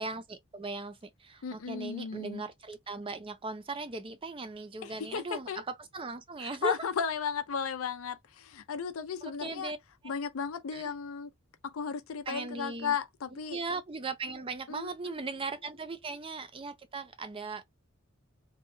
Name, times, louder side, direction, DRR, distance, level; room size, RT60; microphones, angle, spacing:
voice 1, 0.0-6.8 9.2-9.8 10.0-10.1 10.7-10.9 12.3-13.0 13.3-17.6, right 3 dB, 25° right, 0.5 m, -38 dB
voice 2, 1.4-2.4 4.8-5.6 6.6-9.7 10.0-11.3 11.6-13.6 14.7-15.1, left 6 dB, 75° left, 0.5 m, -35 dB
2.7 x 2.2 x 2.6 m
head